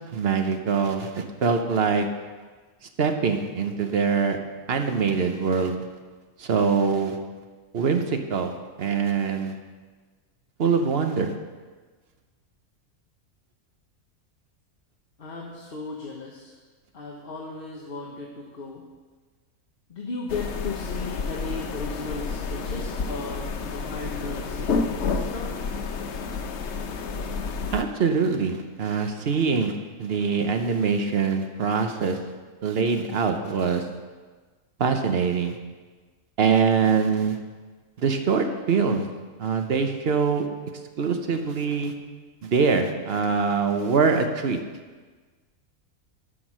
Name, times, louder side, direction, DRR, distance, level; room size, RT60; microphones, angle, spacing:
voice 1, 0.1-2.1 3.0-4.4 4.7-5.8 6.4-7.2 7.7-9.6 10.6-11.3 27.7-32.2 32.6-33.9 34.8-35.6 36.4-37.4 38.0-39.1 39.4-40.5 41.0-41.9 42.4-44.6, right 5 dB, 50° right, 6 dB, 1.0 m, -23 dB
voice 2, 15.2-16.5 16.9-18.8 19.9-25.6, left 3 dB, 45° left, -2 dB, 1.2 m, -36 dB
sound 1, 20.3-27.8, left 4 dB, 60° left, 0.9 m, -30 dB
11.5 x 6.1 x 6.1 m, 1.4 s
omnidirectional pair, 1.5 m